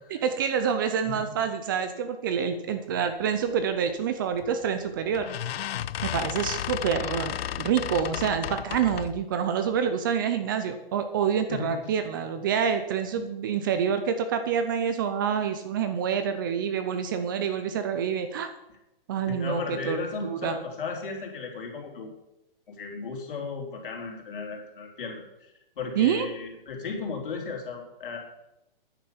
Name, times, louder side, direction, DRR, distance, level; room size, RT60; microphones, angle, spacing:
voice 1, 0.1-5.3 6.0-18.5 19.1-20.5 26.0-26.3, right 7 dB, 20° right, 9 dB, 0.6 m, -27 dB
sound 1, 4.4-4.7 5.1-9.2, left 11 dB, 85° left, 0.5 m, -33 dB
voice 2, 11.5-11.9 19.3-22.1 22.7-28.2, left 4 dB, 65° left, 1 dB, 3.9 m, -35 dB
10.0 x 8.6 x 7.1 m, 0.91 s
hypercardioid pair, 165°, 29 cm